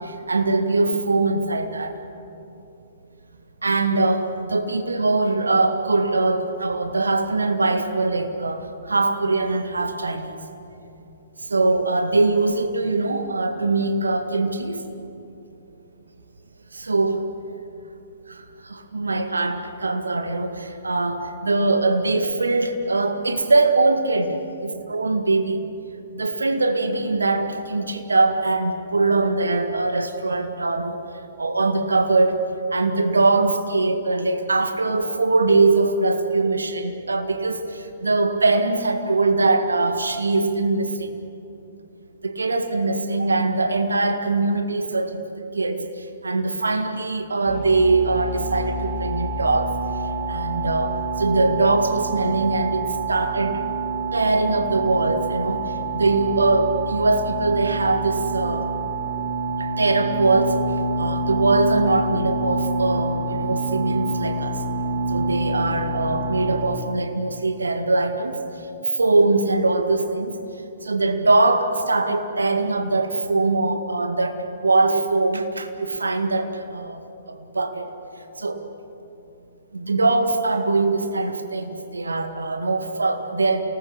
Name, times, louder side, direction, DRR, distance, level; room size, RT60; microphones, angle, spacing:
voice 1, 0.0-1.9 3.6-8.6 8.9-10.4 11.5-14.8 16.7-17.2 18.3-24.4 24.6-25.6 26.1-31.0 31.4-41.1 42.2-45.9 46.2-49.7 50.3-53.6 54.1-58.7 59.6-60.6 61.0-64.5 65.1-68.4 68.9-70.4 70.8-74.4 74.6-77.0 77.3-77.9 78.4-78.6 79.7-83.6, right 3 dB, 75° right, 7 dB, 1.9 m, -22 dB
sound 1, 47.5-66.8, right 3 dB, 45° right, 2.4 m, -27 dB
28.5 x 19.5 x 6.9 m, 2.8 s
figure-of-eight pair, 120°, 0 cm